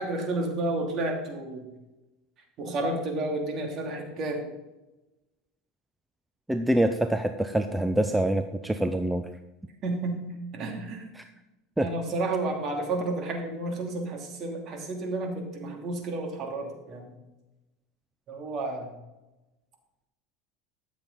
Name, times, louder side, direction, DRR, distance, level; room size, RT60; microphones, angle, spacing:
voice 1, 0.0-1.7 2.6-4.4 9.8-11.1 11.8-17.1 18.3-18.9, right 2 dB, 45° right, 2 dB, 2.8 m, -31 dB
voice 2, 6.5-9.2 11.2-11.3 11.8-11.9, right 1 dB, 5° right, 8 dB, 0.6 m, -25 dB
13.5 x 7.3 x 4.0 m, 1.0 s
supercardioid pair, 110°, 0 cm